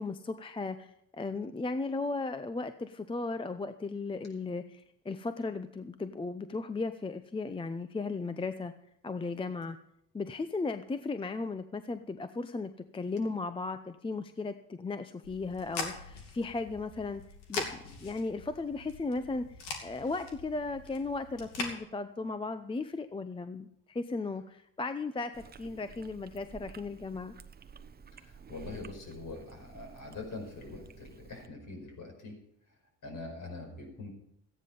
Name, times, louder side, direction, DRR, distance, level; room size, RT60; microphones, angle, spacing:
voice 1, 0.0-8.7 9.0-9.8 10.1-17.2 17.5-19.4 19.8-25.3 25.6-27.3, left 3 dB, 15° left, 10 dB, 0.6 m, -36 dB
sound 1, 15.2-21.7, left 4 dB, 85° left, 2.5 m, -42 dB
Chewing mastication, 25.3-31.5, right 6 dB, 25° right, 0.8 m, -52 dB
voice 2, 28.1-32.4 33.0-34.1, left 3 dB, 50° left, 3 dB, 5.3 m, -43 dB
14.0 x 9.6 x 5.4 m, 0.75 s
supercardioid pair, 90°, 39 cm